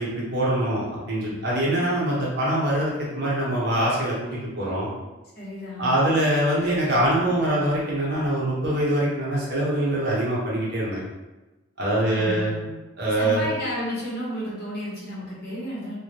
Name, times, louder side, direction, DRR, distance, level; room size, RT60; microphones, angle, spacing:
voice 1, 0.0-4.9 5.8-11.0 11.8-12.5 13.0-13.5, right 1 dB, 55° right, -6 dB, 0.8 m, -24 dB
voice 2, 5.3-6.0 12.0-12.7 13.2-16.0, equal, 50° left, -7 dB, 0.9 m, -32 dB
2.3 x 2.1 x 2.8 m, 1.1 s
head